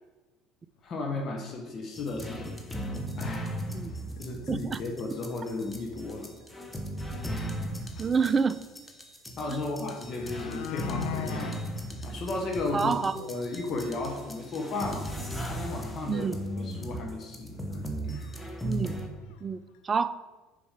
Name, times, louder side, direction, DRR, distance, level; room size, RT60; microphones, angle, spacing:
voice 1, 0.8-2.8 3.2-3.5 4.2-6.3 8.0-8.1 9.4-11.5 12.0-15.1 15.5-16.3 16.6-18.4, left 3 dB, 45° left, 2 dB, 1.1 m, -35 dB
sound 1, 1.2-1.3 1.8-1.9 2.2-2.3 3.2-3.3 3.9-4.2 4.5-4.6 4.9-5.3 6.7-6.8 7.1-7.2 9.5-9.6 9.9-11.6 12.0-12.1 12.4-12.5 12.9-13.0 13.4-13.5 16.3-16.4 16.7-16.8 17.6-17.7 18.1-18.4 18.6-19.4 19.7-19.8, left 11 dB, 65° left, 0.5 m, -39 dB
sound 2, 1.9-19.1, equal, 10° left, 1.0 m, -37 dB
voice 2, 4.5-4.8 8.0-8.6 9.5-9.6 12.7-13.2 16.1-16.4 18.6-18.9 19.4-20.1, right 5 dB, 30° right, 15 dB, 0.3 m, -28 dB
7.0 x 5.3 x 3.6 m, 1.2 s
figure-of-eight pair, 65°, 0 cm